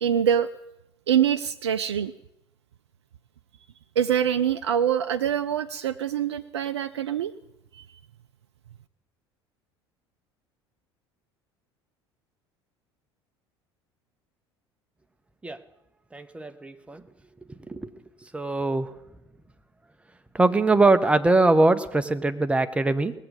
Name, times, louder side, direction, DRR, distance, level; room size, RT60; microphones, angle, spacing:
voice 1, 0.0-0.5 1.1-2.1 4.0-7.3 7.7-7.8, right 9 dB, 75° right, 10 dB, 0.4 m, -24 dB
voice 2, 16.1-17.0 17.7-17.9 18.3-18.9 20.3-23.1, right 2 dB, 10° right, 9 dB, 0.7 m, -22 dB
19.0 x 7.3 x 5.3 m, 0.90 s
figure-of-eight pair, 65°, 14 cm